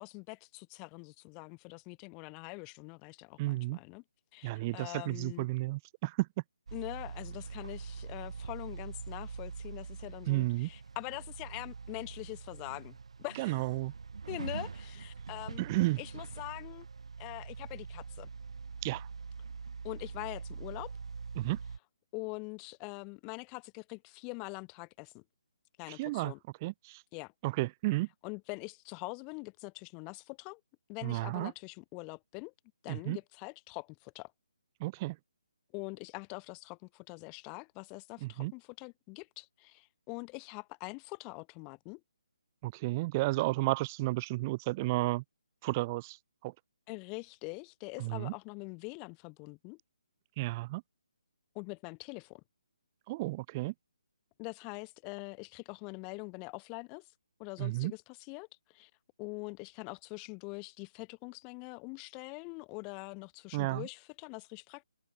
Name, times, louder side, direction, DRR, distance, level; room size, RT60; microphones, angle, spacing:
voice 1, 0.0-4.0 4.3-5.5 6.7-13.6 14.3-15.7 16.0-16.9 17.2-18.3 19.8-20.9 22.1-25.2 25.8-26.4 27.1-27.3 28.2-30.6 30.9-32.5 32.8-34.3 35.7-42.0 46.9-49.8 51.6-52.4 54.4-57.1 57.4-58.9 59.2-64.8, left 33 dB, 20° left, 5.3 m, -44 dB
voice 2, 3.4-3.8 4.4-6.3 10.3-10.7 13.4-13.9 15.6-16.0 18.8-19.1 21.4-21.6 25.9-26.3 26.6-27.0 27.4-28.1 31.0-31.5 32.9-33.2 34.8-35.2 38.2-38.5 42.6-45.2 45.6-46.2 46.4-46.5 48.0-48.3 50.4-50.8 53.1-53.7 57.6-57.9 63.5-63.9, right 20 dB, 25° right, 2.7 m, -32 dB
sound 1, 6.7-21.8, right 5 dB, 70° right, 7.0 m, -44 dB
hypercardioid pair, 155°, 3 cm